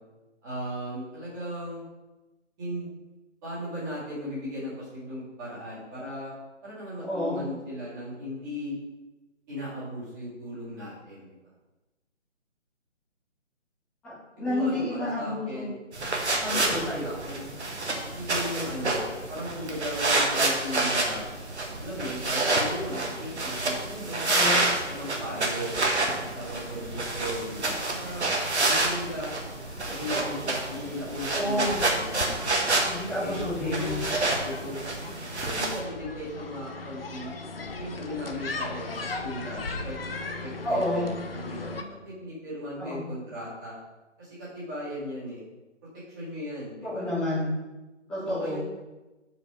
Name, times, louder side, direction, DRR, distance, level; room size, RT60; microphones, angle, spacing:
voice 1, 0.4-1.9 2.6-2.9 3.4-6.3 6.6-8.8 9.5-11.3 14.4-15.7 16.5-17.5 18.0-19.0 19.3-21.4 21.8-25.7 26.0-28.3 28.6-29.3 29.9-32.6 33.2-34.0 34.4-34.8 35.4-37.3 37.8-40.0 40.4-41.1 41.3-43.8 44.2-45.4 46.1-47.1 48.2-48.6, equal, 15° right, -9 dB, 1.9 m, -37 dB
voice 2, 7.0-7.4 14.0-15.6 16.4-17.1 24.3-24.6 31.3-31.8 32.8-34.0 40.6-41.0 42.8-43.0 46.8-47.5 48.1-48.6, left 1 dB, ahead, -14 dB, 0.9 m, -30 dB
sound 1, 15.9-35.8, right 2 dB, 65° right, 1.3 m, -28 dB
sound 2, 25.8-41.8, left 3 dB, 50° left, 0.6 m, -39 dB
5.2 x 4.7 x 5.0 m, 1.1 s
figure-of-eight pair, 150°, 36 cm